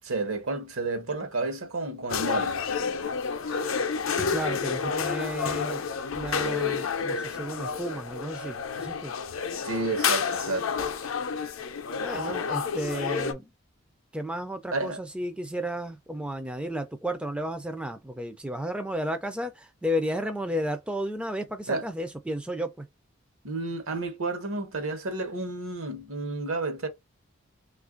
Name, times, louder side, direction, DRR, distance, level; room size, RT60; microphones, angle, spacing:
voice 1, 0.0-2.6 9.6-10.9 12.1-12.4 14.7-15.0 21.7-21.8 23.4-26.9, right 3 dB, 80° right, 0.9 m, -31 dB
sound 1, 2.1-13.3, left 6 dB, 70° left, 0.5 m, -30 dB
voice 2, 4.1-5.8 6.1-9.1 12.0-13.5 14.1-22.9, equal, 5° right, 0.3 m, -33 dB
3.0 x 2.4 x 3.7 m
head